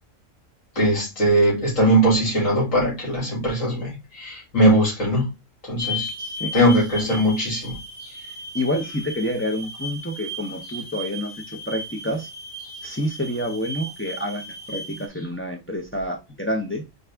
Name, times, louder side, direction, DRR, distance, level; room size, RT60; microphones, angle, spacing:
voice 1, 0.8-5.3 5.7-6.1 6.5-7.8 8.0-8.1, right 1 dB, 75° left, 2.7 m, -20 dB
sound 1, 5.8-15.1, left 1 dB, 15° right, 0.7 m, -35 dB
voice 2, 6.2-6.5 8.5-12.3 12.8-14.4 14.7-16.8, equal, 20° left, 0.3 m, -28 dB
4.1 x 3.4 x 3.4 m
omnidirectional pair, 1.4 m